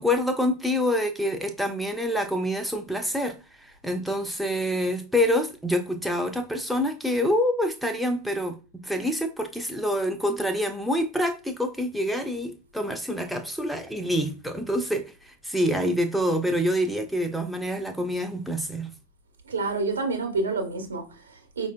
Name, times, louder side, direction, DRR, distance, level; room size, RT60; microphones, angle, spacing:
voice 1, 0.0-18.9, equal, ahead, 0.5 m, -26 dB
voice 2, 19.4-21.7, right 3 dB, 70° right, 0.9 m, -28 dB
4.7 x 2.6 x 2.2 m
figure-of-eight pair, 90°, 0 cm